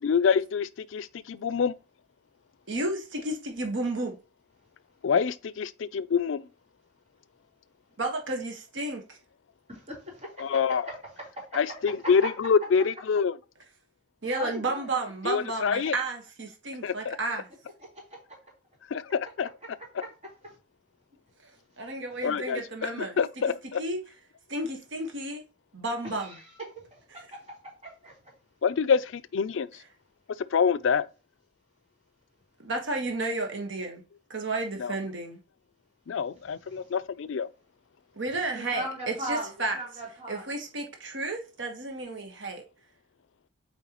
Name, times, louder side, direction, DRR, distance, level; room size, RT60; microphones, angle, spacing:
voice 1, 0.0-1.7 5.0-6.5 10.4-10.8 11.6-13.4 15.2-15.9 16.8-17.2 18.9-19.0 19.4-19.5 22.2-23.8 28.6-29.7 30.5-31.1 34.8-34.9 36.1-37.5, left 6 dB, 85° left, 0.4 m, -26 dB
voice 2, 2.7-4.2 8.0-9.2 14.2-17.5 21.8-23.2 23.8-24.0 24.5-25.4 25.7-26.3 32.6-34.0 34.3-35.4 38.2-39.8 40.3-42.6, right 2 dB, 75° right, 1.4 m, -32 dB
voice 3, 9.7-11.0 12.0-12.3 14.2-14.9 17.9-18.4 20.0-20.1 20.4-20.6 26.0-28.2 36.7-36.9 38.5-40.5, right 1 dB, 35° right, 3.6 m, -39 dB
7.8 x 4.5 x 3.0 m
head